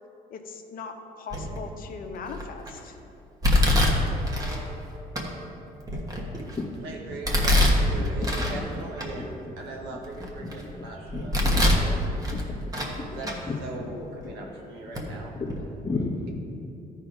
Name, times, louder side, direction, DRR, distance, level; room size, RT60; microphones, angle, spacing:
voice 1, 0.3-3.0, left 5 dB, 60° left, 5 dB, 0.9 m, -39 dB
Domestic sounds home sounds, 1.3-1.7 2.3-2.7 3.4-4.6 5.2-5.3 5.8-6.6 7.2-8.6 9.0-9.1 9.7-10.6 11.1-11.9 12.2-13.0 13.2-13.4 14.2-14.3 14.9-15.1 15.4-15.6, left 1 dB, 20° right, 1.4 m, -24 dB
voice 2, 6.8-12.1 13.0-15.3, right 2 dB, 85° right, -1 dB, 1.7 m, -40 dB
voice 3, 11.1-11.6 12.3-13.2 13.5-13.6 15.3-15.5 15.8-16.1, left 3 dB, 20° left, 1 dB, 1.3 m, -32 dB
13.5 x 4.5 x 5.3 m, 2.7 s
cardioid pair, 110°, 17 cm